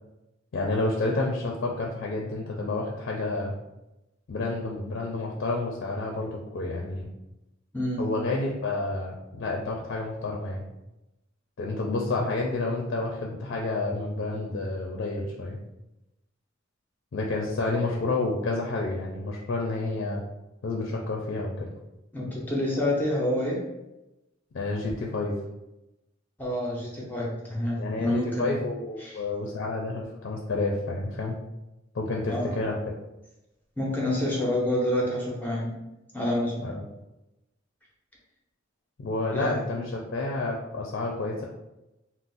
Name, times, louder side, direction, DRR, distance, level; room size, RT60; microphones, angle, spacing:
voice 1, 0.5-3.5 4.3-7.1 8.0-10.6 11.6-15.6 17.1-20.2 20.6-21.7 24.5-25.3 27.8-31.4 31.9-32.7 36.6-36.9 39.0-41.4, left 2 dB, 55° left, -1 dB, 0.4 m, -29 dB
voice 2, 22.1-23.6 26.4-28.6 29.0-29.2 32.3-32.5 33.8-35.7 36.1-36.5 39.3-39.6, left 1 dB, 10° left, -4 dB, 0.6 m, -28 dB
2.5 x 2.0 x 3.9 m, 0.95 s
head